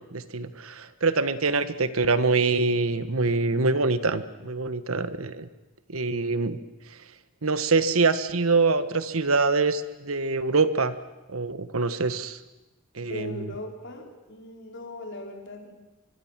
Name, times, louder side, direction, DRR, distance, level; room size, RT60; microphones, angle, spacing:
voice 1, 0.1-5.5 5.9-6.6 7.4-11.0 11.3-12.4 12.9-13.5, right 3 dB, 85° right, 12 dB, 1.4 m, -25 dB
voice 2, 13.0-15.7, left 1 dB, 60° left, 2 dB, 4.5 m, -39 dB
24.5 x 23.0 x 7.5 m, 1.1 s
head